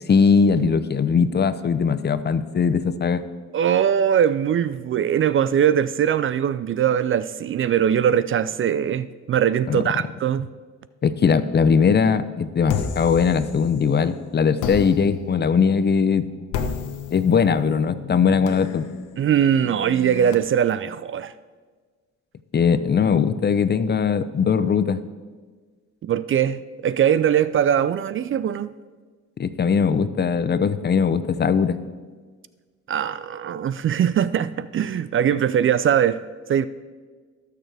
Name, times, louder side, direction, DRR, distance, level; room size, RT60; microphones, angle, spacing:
voice 1, 0.1-3.2 9.7-9.8 11.0-16.3 17.1-18.9 22.5-25.0 29.4-31.8, left 6 dB, 35° left, 0.6 m, -20 dB
voice 2, 3.5-10.5 19.2-21.3 26.0-28.7 32.9-36.2 36.5-36.7, right 9 dB, 45° right, 0.4 m, -21 dB
sound 1, 12.7-14.0 14.6-20.3, left 6 dB, 80° left, 1.0 m, -33 dB
18.5 x 6.7 x 3.4 m
cardioid pair, 90°, 30 cm